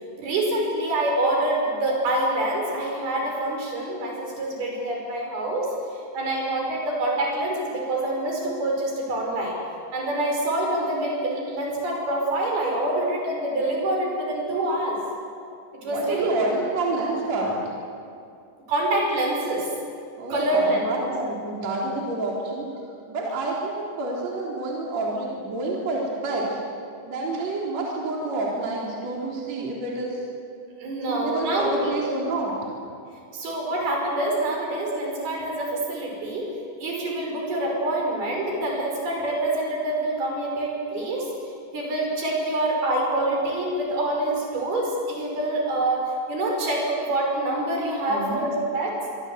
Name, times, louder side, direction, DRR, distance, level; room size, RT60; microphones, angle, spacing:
voice 1, 0.2-9.6 9.9-15.0 15.7-16.3 18.7-19.7 20.3-21.1 30.8-32.1 33.3-36.5 36.8-41.3 41.7-49.0, right 1 dB, 70° right, 0 dB, 7.6 m, -26 dB
voice 2, 15.8-17.6 20.2-22.7 23.1-26.6 27.0-30.2 31.1-32.5 48.1-48.5, right 2 dB, 45° right, -3 dB, 4.8 m, -28 dB
25.5 x 24.0 x 8.2 m, 2.4 s
omnidirectional pair, 4.5 m